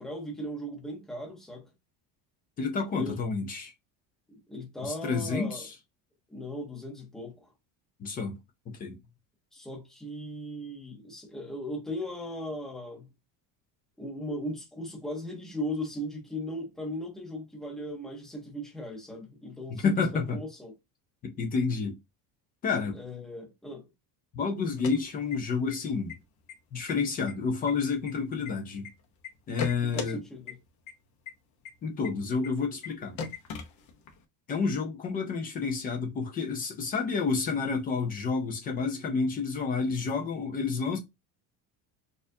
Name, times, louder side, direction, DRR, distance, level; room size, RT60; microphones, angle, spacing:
voice 1, 0.0-1.7 2.9-3.2 4.3-5.7 6.3-7.5 9.5-13.1 14.0-20.7 22.9-23.9 29.8-30.6, equal, ahead, 0.7 m, -38 dB
voice 2, 2.6-3.7 4.8-5.7 8.0-8.4 8.7-9.0 19.7-20.4 21.2-22.0 22.6-23.0 24.3-26.1 26.7-28.9 29.5-30.2 31.8-33.2 34.5-41.0, left 4 dB, 20° left, 0.4 m, -30 dB
sound 1, 24.6-25.7 26.1-26.2 26.5-26.9 27.3-28.9 29.2-30.1 30.5-30.6 30.9-31.0 31.3-31.4 31.7-31.8 32.0-32.1 32.4-32.5 32.8-32.9 33.2-34.2, left 6 dB, 45° left, 0.7 m, -38 dB
4.2 x 2.5 x 2.6 m
cardioid pair, 170°, 44 cm